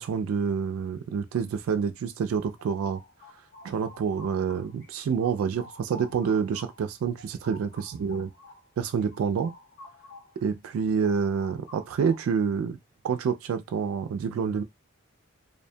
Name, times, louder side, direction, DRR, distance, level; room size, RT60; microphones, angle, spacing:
voice 1, 0.0-3.0 3.6-8.3 8.8-9.5 10.4-12.8 13.0-14.6, right 6 dB, 85° right, 0.3 m, -28 dB
sound 1, 2.6-4.9 5.2-10.4 10.7-12.5, left 2 dB, 45° left, 0.6 m, -50 dB
2.5 x 2.2 x 2.6 m
head